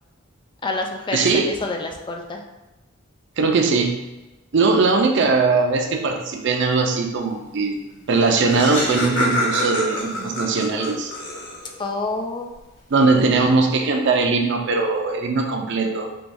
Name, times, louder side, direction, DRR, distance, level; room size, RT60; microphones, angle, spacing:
voice 1, 0.6-2.4 11.8-12.5, left 3 dB, 25° left, 2 dB, 0.3 m, -27 dB
voice 2, 1.1-1.5 3.4-4.0 4.5-7.8 8.1-11.1 12.9-16.2, right 4 dB, 60° right, 3 dB, 0.4 m, -20 dB
Laughter, 7.9-8.0 8.2-11.8, left 1 dB, 65° left, 0.8 m, -26 dB
4.5 x 2.3 x 2.6 m, 1.1 s
head